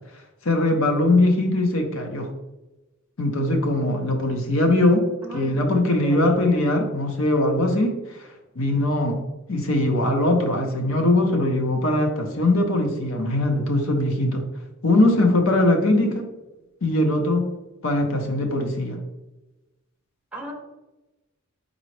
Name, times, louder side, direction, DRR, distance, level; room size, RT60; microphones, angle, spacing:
voice 1, 0.4-2.3 3.2-5.0 5.3-8.2 8.6-9.2 9.5-14.4 14.8-16.3 16.8-17.4 17.8-19.0, left 1 dB, 65° left, 3 dB, 0.8 m, -21 dB
voice 2, 5.2-6.6 20.3-20.5, left 1 dB, 5° right, -1 dB, 0.9 m, -35 dB
4.0 x 3.9 x 3.2 m, 1.1 s
head